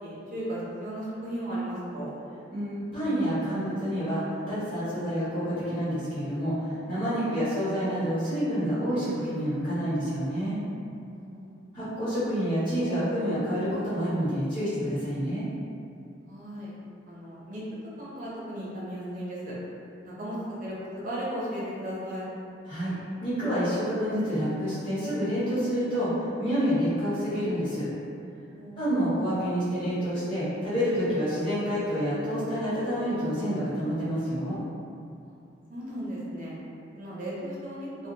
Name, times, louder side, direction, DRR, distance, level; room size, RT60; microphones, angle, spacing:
voice 1, 0.0-2.1 11.1-11.5 16.3-16.7 17.1-17.6 18.0-19.5 20.0-20.8 21.0-22.3 28.5-28.9 35.2-35.3 35.7-36.6 36.9-37.9, right 1 dB, 45° right, -7 dB, 0.5 m, -36 dB
voice 2, 2.5-10.6 11.7-15.5 22.7-22.9 23.2-27.9 28.7-34.6, equal, 25° left, -13 dB, 1.0 m, -28 dB
2.3 x 2.2 x 2.6 m, 2.5 s
head